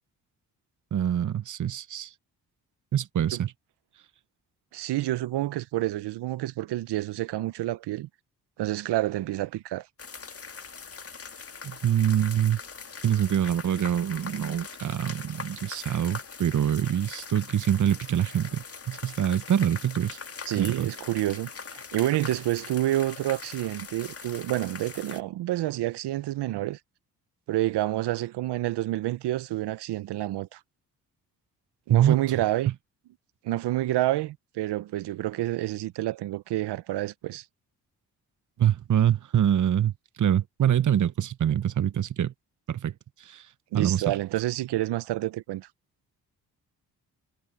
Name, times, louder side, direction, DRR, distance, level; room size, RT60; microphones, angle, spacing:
voice 1, 0.9-2.1 2.9-3.5 11.6-12.6 13.0-20.2 20.6-20.9 31.9-32.2 38.6-42.3 42.7-42.9 43.2-43.4 43.7-44.2, right 10 dB, 50° right, 0.9 m, -25 dB
voice 2, 4.7-8.1 8.6-9.9 20.5-26.8 27.5-30.6 31.9-32.7 33.4-37.5 43.7-45.7, right 15 dB, 80° right, 0.9 m, -28 dB
Water falling on stones in forest, 10.0-25.2, left 5 dB, 35° left, 1.6 m, -42 dB
supercardioid pair, 50°, 40 cm